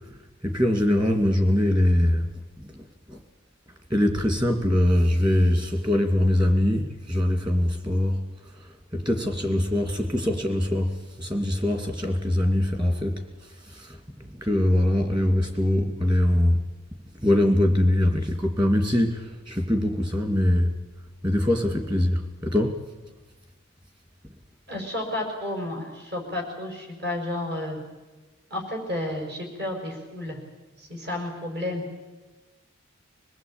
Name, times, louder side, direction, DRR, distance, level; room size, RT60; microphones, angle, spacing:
voice 1, 0.4-2.3 2.6-2.7 3.1-3.2 3.9-8.2 8.9-13.2 13.7-14.0 14.4-16.6 17.2-20.7 21.2-22.8, left 1 dB, 20° right, 2.6 m, -22 dB
voice 2, 24.7-27.8 28.5-30.4 30.8-31.9, left 1 dB, 50° right, 5.5 m, -31 dB
25.5 x 19.0 x 8.9 m
head